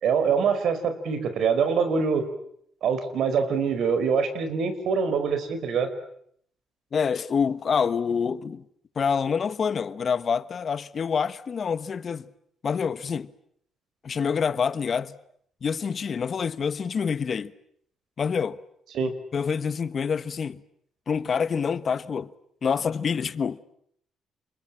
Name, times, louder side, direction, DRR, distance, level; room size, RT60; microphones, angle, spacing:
voice 1, 0.0-2.3 2.8-5.9 18.9-19.1, right 6 dB, 70° right, 4.8 m, -24 dB
voice 2, 6.9-8.6 9.0-12.3 12.6-13.3 14.0-15.1 15.6-17.5 18.2-18.6 19.0-20.6 21.1-22.3 22.6-23.7, left 6 dB, 45° left, 1.2 m, -27 dB
29.5 x 22.0 x 8.9 m
cardioid pair, 90°, 0 cm